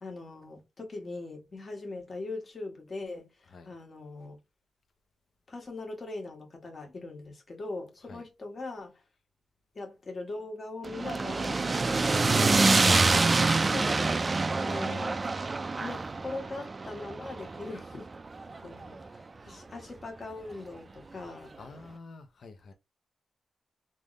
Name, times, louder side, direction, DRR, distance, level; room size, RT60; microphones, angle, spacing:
voice 1, 0.0-4.4 5.5-9.0 9.7-13.3 13.7-14.0 14.6-15.4 15.8-18.1 18.5-21.6, left 2 dB, 40° left, 1.5 m, -41 dB
sound 1, 10.8-19.1, right 3 dB, 35° right, 0.4 m, -26 dB
voice 2, 21.6-22.7, left 3 dB, 65° left, 0.9 m, -49 dB
3.4 x 2.6 x 3.1 m
cardioid pair, 95°, 0 cm